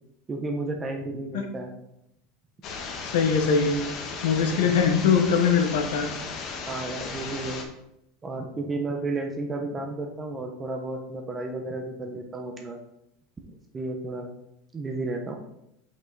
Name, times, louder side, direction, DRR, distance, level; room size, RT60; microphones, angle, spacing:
voice 1, 0.3-1.7 4.6-4.8 6.7-7.6 8.2-12.8 13.4-14.3 14.7-15.3, right 2 dB, 20° right, 3 dB, 0.8 m, -32 dB
sound 1, 2.6-7.6, left 5 dB, 45° left, 1.2 m, -35 dB
voice 2, 3.0-3.8 4.2-6.1, left 6 dB, 80° left, 5 dB, 1.1 m, -22 dB
5.5 x 5.3 x 4.0 m, 0.81 s
supercardioid pair, 120°, 0 cm